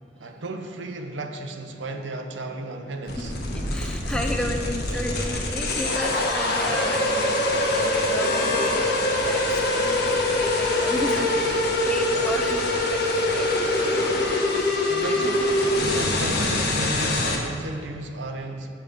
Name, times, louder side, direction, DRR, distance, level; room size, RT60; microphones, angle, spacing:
voice 1, 0.1-3.3 4.1-4.3 4.6-5.3 5.9-6.0 11.2-11.9 12.2-12.3 14.9-18.7, right 2 dB, 85° right, 4 dB, 0.8 m, -35 dB
sound 1, 3.1-17.4, left 2 dB, 60° left, 1.2 m, -24 dB
voice 2, 3.7-7.5 7.8-10.2 10.4-11.3 11.9-13.5 15.0-15.3, left 1 dB, 5° left, 3 dB, 0.5 m, -33 dB
8.2 x 5.0 x 6.8 m, 2.2 s
head